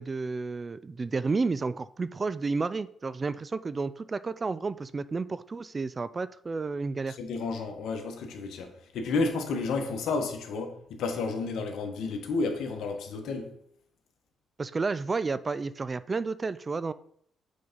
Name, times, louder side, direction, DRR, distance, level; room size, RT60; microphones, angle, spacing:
voice 1, 0.0-7.2 14.6-16.9, right 4 dB, 30° right, 0.3 m, -31 dB
voice 2, 7.1-13.5, left 3 dB, 75° left, 1.3 m, -31 dB
6.8 x 4.0 x 5.2 m
cardioid pair, 90°, 0 cm